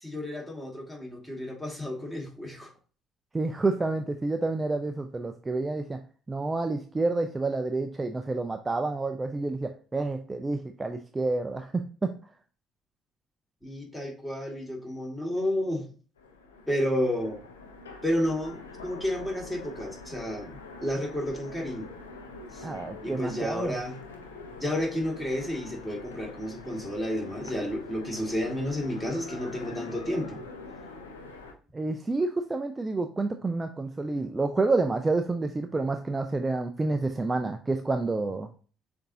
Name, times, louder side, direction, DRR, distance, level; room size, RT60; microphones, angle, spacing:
voice 1, 0.0-2.7 13.6-15.9 16.7-17.4 18.0-21.9 22.5-22.7 23.0-23.9 24.6-30.4, left 1 dB, 10° left, 0 dB, 1.9 m, -31 dB
voice 2, 3.3-6.0 6.3-12.2 22.6-23.8 31.7-38.5, right 3 dB, 20° right, 6 dB, 0.4 m, -29 dB
Train, 16.2-31.5, left 3 dB, 85° left, 0.6 m, -44 dB
6.7 x 2.7 x 2.7 m, 0.40 s
hypercardioid pair, 55°, 0 cm